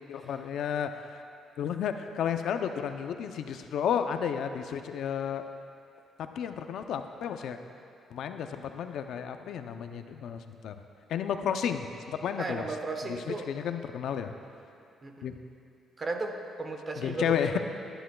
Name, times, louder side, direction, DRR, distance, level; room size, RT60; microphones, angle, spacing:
voice 1, 0.1-0.9 1.6-5.4 6.2-7.6 8.1-10.7 11.1-12.7 13.5-14.3 15.2-15.3 17.0-17.6, left 8 dB, 75° left, 7 dB, 0.5 m, -32 dB
voice 2, 12.4-13.5 15.0-15.3 16.0-17.6, right 3 dB, 35° right, 4 dB, 1.2 m, -35 dB
19.5 x 10.0 x 2.3 m, 2.6 s
cardioid pair, 90°, 0 cm